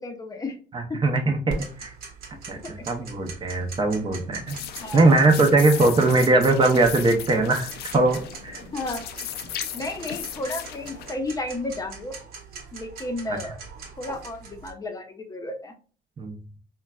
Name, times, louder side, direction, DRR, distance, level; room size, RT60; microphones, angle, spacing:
voice 1, 0.0-0.6 0.9-1.0 4.8-5.1 5.7-5.8 6.1-6.2 8.7-9.1 9.7-12.1 12.7-13.6 14.0-15.7, left 2 dB, 20° left, 5 dB, 0.6 m, -32 dB
voice 2, 0.7-1.9 2.4-4.6 4.9-7.7 7.9-8.6 16.2-16.3, right 2 dB, 30° right, 4 dB, 0.5 m, -20 dB
Tick-tock, 1.5-14.7, right 4 dB, 65° right, 0.9 m, -41 dB
sound 1, 4.5-11.1, left 10 dB, 75° left, 0.4 m, -36 dB
3.8 x 2.2 x 2.2 m, 0.38 s
cardioid pair, 110°, 17 cm